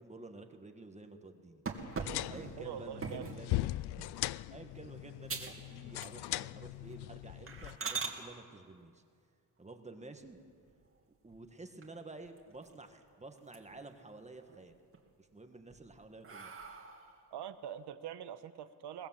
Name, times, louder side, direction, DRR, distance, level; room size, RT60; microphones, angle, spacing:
voice 1, 0.0-1.6 2.3-3.7 4.0-9.0 9.6-10.4 11.2-14.8 15.2-16.5, right 2 dB, 15° right, 5 dB, 1.5 m, -51 dB
sound 1, 1.7-3.4 4.0-4.3 4.7-4.8 5.3-5.6 5.9-6.5 6.8-7.0 7.5-8.2 10.2-10.8 11.3-11.4 11.8-11.9 12.2-13.0 13.3-13.9 14.3-15.0 15.5-17.2, right 5 dB, 35° right, 2.3 m, -42 dB
sound 2, 1.8-7.8, left 17 dB, 75° left, 0.5 m, -40 dB
voice 2, 2.6-3.3 17.3-19.1, right 9 dB, 80° right, 11 dB, 1.2 m, -44 dB
22.0 x 19.5 x 7.5 m, 2.2 s
cardioid pair, 135°, 39 cm